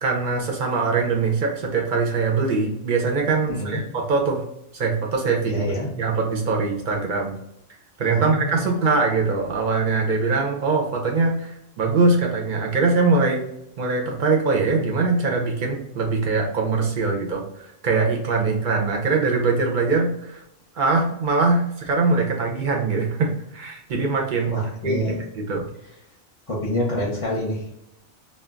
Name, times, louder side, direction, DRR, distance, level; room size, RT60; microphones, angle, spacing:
voice 1, 0.0-4.4 4.7-5.6 6.0-7.3 8.0-13.4 13.8-17.4 17.8-20.4 20.8-25.0 25.5-25.7, right 4 dB, 55° right, 0 dB, 0.6 m, -22 dB
voice 2, 3.4-3.8 5.4-5.9 8.1-8.7 24.5-25.2 26.5-27.8, left 1 dB, 30° left, -4 dB, 0.6 m, -27 dB
2.3 x 2.1 x 3.5 m, 0.80 s
omnidirectional pair, 1.2 m